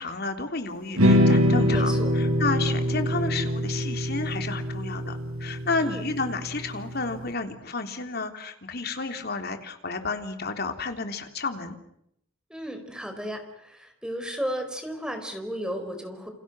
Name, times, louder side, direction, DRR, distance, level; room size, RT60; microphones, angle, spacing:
voice 1, 0.0-11.8, left 3 dB, 45° left, 6 dB, 3.3 m, -31 dB
sound 1, 1.0-7.2, equal, 85° right, 7.6 m, -24 dB
voice 2, 1.7-2.1 5.8-6.0 12.5-16.3, equal, 5° right, 6 dB, 4.7 m, -34 dB
29.5 x 28.0 x 6.2 m, 0.74 s
head